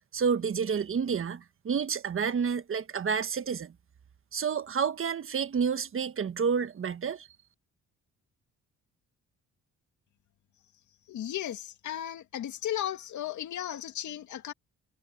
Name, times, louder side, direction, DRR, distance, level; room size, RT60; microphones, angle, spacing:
voice 1, 0.1-3.7 4.3-7.3, right 6 dB, 45° right, 1.4 m, -29 dB
voice 2, 11.1-14.5, left 11 dB, 70° left, 2.6 m, -35 dB
cardioid pair, 90°, 30 cm